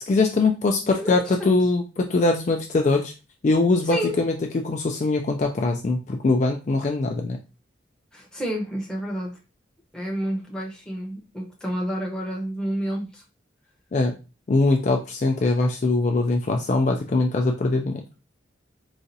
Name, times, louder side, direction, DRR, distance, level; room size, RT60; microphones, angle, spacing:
voice 1, 0.1-3.1 3.4-4.3 4.6-7.4 13.9-14.2 14.5-18.0, left 3 dB, 40° left, 3 dB, 0.3 m, -22 dB
voice 2, 1.0-1.6 3.8-4.2 8.1-9.4 9.9-13.2, equal, 5° left, -2 dB, 0.7 m, -30 dB
4.0 x 2.4 x 2.6 m, 0.30 s
head